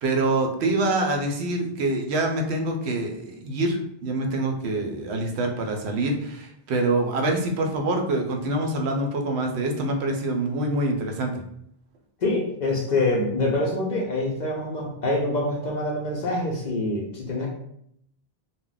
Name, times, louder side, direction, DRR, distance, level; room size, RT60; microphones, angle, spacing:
voice 1, 0.0-11.3, right 2 dB, 85° right, 3 dB, 0.9 m, -25 dB
voice 2, 12.2-17.5, left 2 dB, 55° left, -2 dB, 0.6 m, -25 dB
2.3 x 2.0 x 3.8 m, 0.73 s
omnidirectional pair, 1.1 m